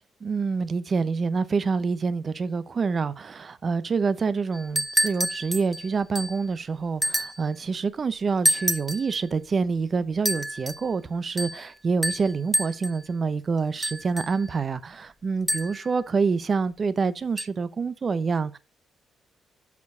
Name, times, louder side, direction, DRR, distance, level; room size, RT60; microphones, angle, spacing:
voice 1, 0.2-18.6, right 5 dB, 45° right, 0.7 m, -27 dB
sound 1, 4.5-6.5 7.0-7.5 8.4-9.2 10.2-10.9 11.4-11.7 12.0-13.0 13.8-14.5 15.5-15.9 17.4-17.5, equal, 5° right, 0.8 m, -28 dB
7.0 x 4.8 x 5.4 m
supercardioid pair, 70°, 0 cm